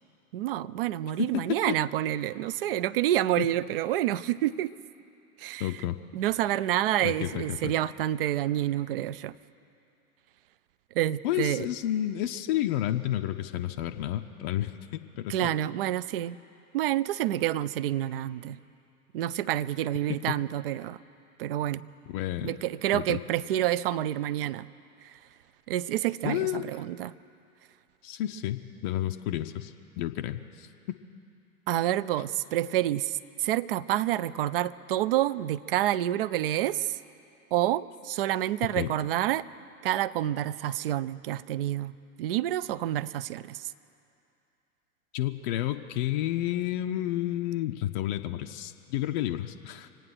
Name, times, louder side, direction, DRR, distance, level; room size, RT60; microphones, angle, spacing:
voice 1, 0.3-4.7 5.4-5.7 6.1-9.3 10.9-11.7 15.3-16.4 16.7-18.6 19.1-21.0 21.4-21.8 22.4-24.7 25.0-25.2 25.7-27.1 31.7-37.0 37.5-39.4 39.8-43.7, right 13 dB, 40° right, 17 dB, 0.4 m, -28 dB
voice 2, 5.6-6.0 7.0-7.7 11.2-15.5 22.1-22.5 22.9-23.2 26.2-26.6 28.0-30.7 38.8-38.9 45.1-49.9, left 13 dB, 35° left, 5 dB, 0.5 m, -31 dB
24.5 x 9.1 x 6.3 m, 2.6 s
figure-of-eight pair, 95°, 44 cm